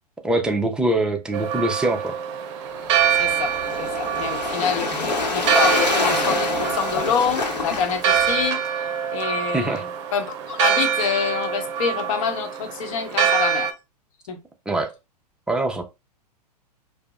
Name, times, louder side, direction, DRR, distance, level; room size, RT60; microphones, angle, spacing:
voice 1, 0.2-2.1 9.5-9.8 14.7-14.9 15.5-15.8, right 2 dB, 5° right, 0.6 m, -23 dB
Church bell, 1.3-13.7, right 8 dB, 45° right, 0.7 m, -25 dB
Waves surf, 2.8-8.5, left 3 dB, 85° left, 0.9 m, -26 dB
voice 2, 3.2-3.5 3.8-8.6 9.1-13.7 14.3-14.4, left 7 dB, 55° left, 1.0 m, -26 dB
4.6 x 2.1 x 2.3 m
figure-of-eight pair, 105°, 21 cm